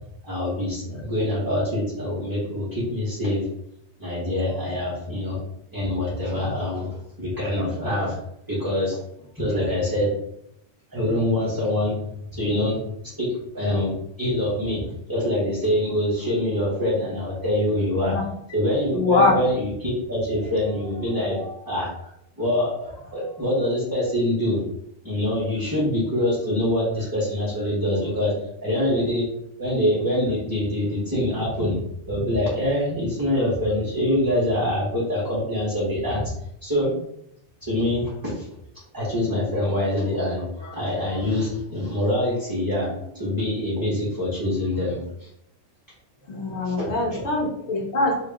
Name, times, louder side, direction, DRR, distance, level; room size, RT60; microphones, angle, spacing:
voice 1, 0.2-3.5 4.0-5.4 5.7-8.2 8.5-9.0 9.3-10.1 10.9-12.0 12.3-12.8 13.2-13.3 13.5-14.8 15.1-18.2 18.5-22.1 22.4-24.6 25.0-28.3 28.6-29.2 29.6-31.8 32.1-36.2 36.6-36.9 37.6-38.5 38.9-45.3 46.6-47.2, left 1 dB, 20° right, -9 dB, 1.2 m, -25 dB
voice 2, 18.9-19.4 46.3-48.1, left 3 dB, 75° left, 0 dB, 1.2 m, -22 dB
3.0 x 2.7 x 3.5 m, 0.75 s
omnidirectional pair, 1.2 m